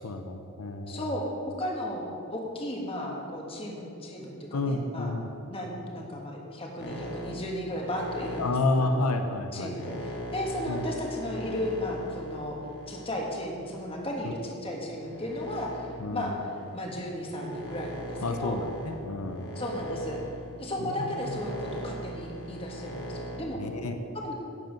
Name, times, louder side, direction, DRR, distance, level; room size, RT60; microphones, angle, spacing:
voice 1, 0.0-1.0 4.5-5.3 8.4-9.8 10.7-10.8 16.0-16.3 18.2-19.6 23.6-24.0, left 2 dB, 85° left, 6 dB, 0.7 m, -30 dB
voice 2, 0.9-1.3 1.6-5.1 5.5-9.0 9.5-12.6 12.9-16.3 16.7-18.6 19.5-20.2 20.6-23.7 24.1-24.3, left 1 dB, 25° left, -1 dB, 1.5 m, -34 dB
sound 1, 6.8-14.2 14.8-23.4, equal, 50° left, 1.4 m, -40 dB
11.0 x 8.1 x 5.2 m, 2.6 s
head